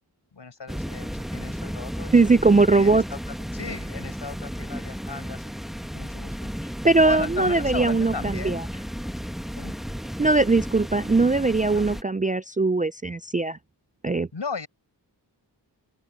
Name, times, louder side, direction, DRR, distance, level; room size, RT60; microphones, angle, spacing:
voice 1, 0.3-2.2 2.7-3.2 3.5-5.4 5.9-6.5 7.0-8.6 9.6-9.7 11.7-11.9 14.3-14.7, left 5 dB, 75° left, 7.2 m, -36 dB
sound 1, 0.7-12.0, equal, ahead, 1.4 m, -33 dB
voice 2, 2.1-3.0 6.8-8.6 10.2-13.6 14.0-14.3, right 3 dB, 20° right, 0.4 m, -20 dB
open air
cardioid pair, 55°, 43 cm